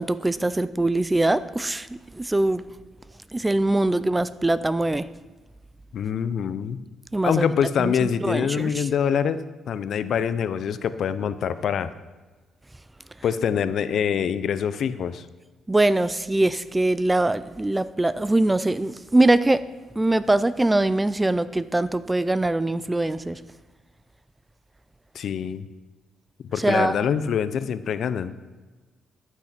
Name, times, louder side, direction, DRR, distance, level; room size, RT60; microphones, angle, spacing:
voice 1, 0.0-2.6 3.3-5.0 7.1-7.5 7.8-8.9 15.7-19.6 20.0-23.4 26.6-27.1, right 2 dB, 15° right, 16 dB, 0.4 m, -22 dB
voice 2, 5.9-6.8 7.2-11.9 13.2-15.3 25.1-25.7 26.5-28.3, left 7 dB, 65° left, 14 dB, 0.6 m, -25 dB
12.0 x 6.4 x 5.9 m, 1.3 s
cardioid pair, 90°, 0 cm